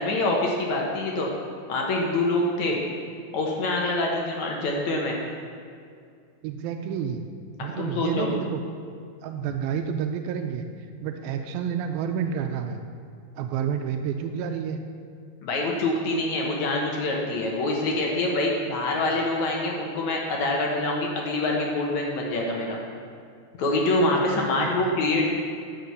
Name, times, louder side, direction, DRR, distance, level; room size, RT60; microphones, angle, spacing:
voice 1, 0.0-1.4 1.7-2.8 3.3-5.2 7.6-8.3 15.4-22.8 23.6-25.3, left 2 dB, 65° left, -1 dB, 2.1 m, -25 dB
voice 2, 6.4-7.2 7.6-8.6 9.2-10.7 11.0-12.8 13.4-14.8 24.1-24.9, right 7 dB, 85° right, 5 dB, 2.4 m, -29 dB
10.5 x 6.4 x 6.9 m, 2.2 s
omnidirectional pair, 4.2 m